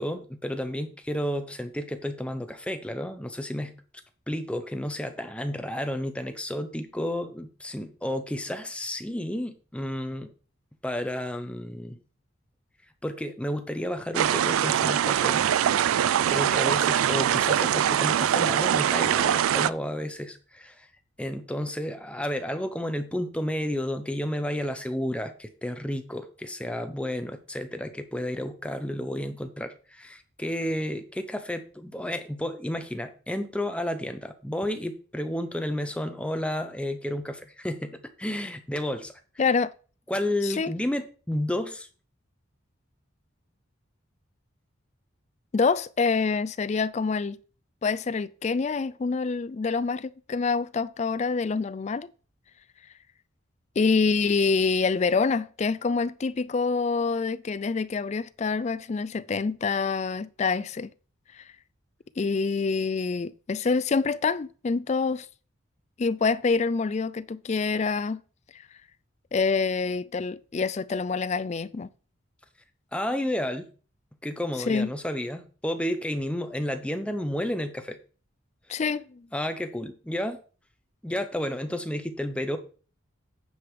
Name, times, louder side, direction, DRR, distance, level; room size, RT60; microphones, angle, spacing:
voice 1, 0.0-3.7 4.3-10.3 10.8-12.0 13.0-15.5 16.3-20.9 21.2-39.1 40.1-41.9 72.9-73.7 74.2-78.0 79.3-80.4 81.0-82.6, left 1 dB, 5° left, 0.7 m, -31 dB
sound 1, 14.1-19.7, right 10 dB, 85° right, 0.3 m, -23 dB
voice 2, 39.4-39.7 40.4-40.7 45.5-47.4 47.8-52.1 53.8-60.9 61.3-61.4 62.2-65.3 66.0-68.2 68.5-68.6 69.3-71.9 74.7-74.9 78.7-79.2, left 4 dB, 35° left, 0.3 m, -26 dB
9.5 x 5.0 x 4.7 m
head